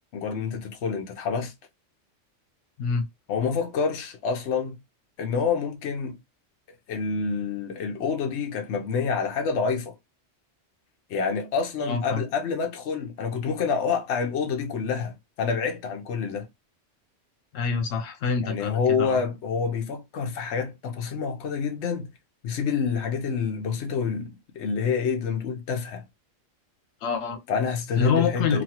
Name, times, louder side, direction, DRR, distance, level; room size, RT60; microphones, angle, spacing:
voice 1, 0.1-1.5 3.3-4.8 5.2-6.2 6.9-10.0 11.1-16.5 18.4-22.1 22.4-26.1 27.5-28.6, left 5 dB, 70° left, 1.0 m, -27 dB
voice 2, 11.9-12.2 17.5-19.2 27.0-27.4 28.0-28.6, left 5 dB, 90° left, 1.1 m, -26 dB
3.0 x 2.3 x 2.8 m
omnidirectional pair, 1.3 m